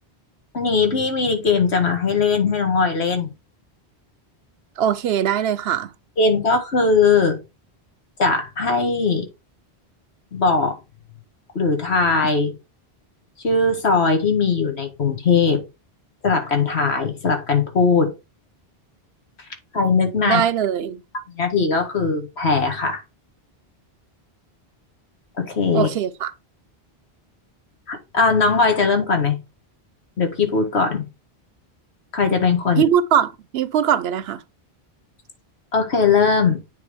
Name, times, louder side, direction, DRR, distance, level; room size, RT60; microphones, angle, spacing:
voice 1, 0.5-3.3 6.2-7.4 8.2-9.3 10.3-10.8 11.5-12.6 13.4-15.6 16.2-18.1 19.7-20.4 21.3-23.0 25.4-25.9 27.9-29.4 30.2-31.1 32.1-32.8 35.7-36.6, left 4 dB, 90° left, 1.9 m, -19 dB
voice 2, 4.8-5.9 20.3-21.0 25.7-26.3 32.8-33.3 33.5-34.4, right 9 dB, 75° right, 0.8 m, -20 dB
9.4 x 3.6 x 3.4 m
omnidirectional pair, 1.1 m